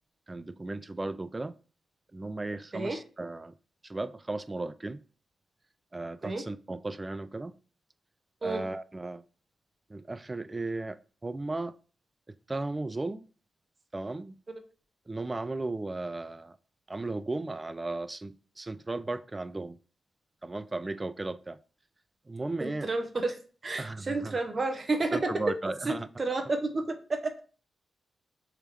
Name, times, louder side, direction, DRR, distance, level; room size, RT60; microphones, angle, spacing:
voice 1, 0.3-1.5 2.1-3.5 3.8-5.0 5.9-7.5 8.4-9.2 9.9-11.7 12.5-13.3 13.9-14.4 15.1-16.6 16.9-19.8 20.4-21.6 22.3-22.9 23.8-24.4 25.1-26.1, right 2 dB, 25° right, 0.3 m, -35 dB
voice 2, 22.6-25.3 25.8-26.9, right 3 dB, 45° right, 0.8 m, -31 dB
3.5 x 3.1 x 3.3 m
supercardioid pair, 50°, 0 cm